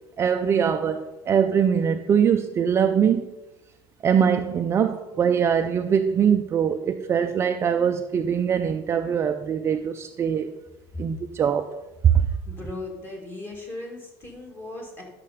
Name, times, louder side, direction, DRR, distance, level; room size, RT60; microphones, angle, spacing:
voice 1, 0.2-3.3 4.0-10.5 11.0-11.7 12.1-12.2, right 7 dB, 25° right, 0.4 m, -22 dB
voice 2, 12.5-15.0, left 2 dB, 20° left, 2.2 m, -37 dB
10.5 x 6.6 x 5.0 m
cardioid pair, 155°, 10 cm